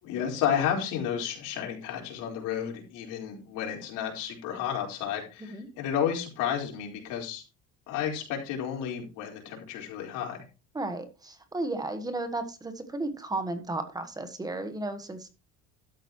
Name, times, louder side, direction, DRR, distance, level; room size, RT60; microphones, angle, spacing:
voice 1, 0.0-7.4 7.9-10.4, left 9 dB, 80° left, 0 dB, 4.4 m, -32 dB
voice 2, 10.7-15.3, right 2 dB, 10° right, 8 dB, 1.3 m, -34 dB
12.5 x 8.9 x 3.1 m, 0.31 s
cardioid pair, 155°, 30 cm